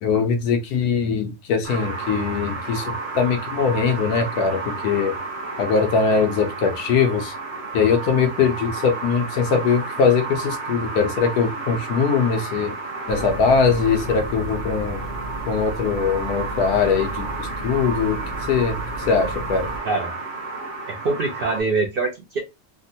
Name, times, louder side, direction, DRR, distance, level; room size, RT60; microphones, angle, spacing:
voice 1, 0.0-5.1 5.6-7.3 7.7-12.7 13.1-15.0 15.5-18.2 18.5-18.8 19.1-19.7, left 5 dB, 85° left, 1.1 m, -21 dB
sound 1, 1.6-21.6, right 3 dB, 40° right, 0.9 m, -32 dB
sound 2, 13.1-19.8, right 1 dB, 50° left, 0.8 m, -34 dB
voice 2, 20.9-22.4, right 3 dB, 65° right, 0.5 m, -24 dB
3.4 x 2.1 x 2.7 m
omnidirectional pair, 1.6 m